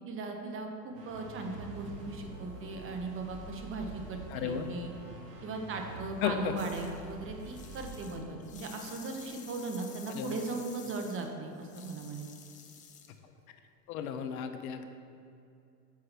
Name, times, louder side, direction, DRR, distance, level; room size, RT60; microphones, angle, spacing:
voice 1, 0.0-4.9 5.4-12.3, right 3 dB, 25° right, 3 dB, 1.0 m, -38 dB
sound 1, 0.9-8.7, right 2 dB, 70° right, 1.8 m, -46 dB
voice 2, 4.3-4.7 6.2-6.5 10.1-10.4 13.9-14.9, left 8 dB, 60° left, 7 dB, 0.8 m, -34 dB
sound 2, 6.6-7.0 7.4-13.2, left 7 dB, 15° left, 0.4 m, -51 dB
5.7 x 4.8 x 6.1 m, 2.5 s
hypercardioid pair, 105°, 48 cm